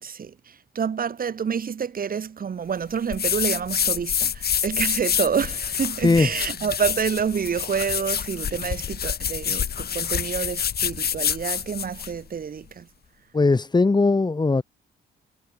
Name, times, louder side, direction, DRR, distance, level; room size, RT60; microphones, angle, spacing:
voice 1, 0.0-12.9, right 7 dB, 45° right, 3.3 m, -28 dB
sound 1, 3.1-12.2, left 8 dB, 55° left, 3.4 m, -27 dB
voice 2, 13.3-14.6, left 3 dB, 20° left, 2.5 m, -19 dB
cardioid pair, 90°, 20 cm